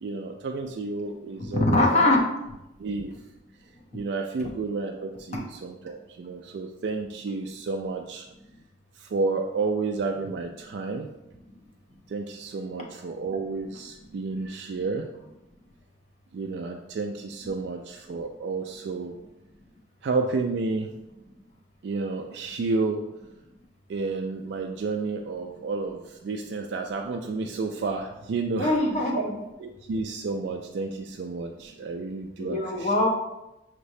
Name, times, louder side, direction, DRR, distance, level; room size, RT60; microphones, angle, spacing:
voice 1, 0.0-2.1 2.8-3.1 3.9-8.2 9.0-11.1 12.1-15.3 16.3-19.1 20.0-20.9 21.8-23.0 23.9-28.7 29.1-29.2 29.6-32.9, right 3 dB, 60° right, 2 dB, 0.3 m, -31 dB
voice 2, 1.5-2.2 5.3-5.4 28.6-29.2 32.4-33.1, left 2 dB, 35° left, 0 dB, 0.7 m, -22 dB
5.8 x 3.1 x 2.7 m, 0.93 s
head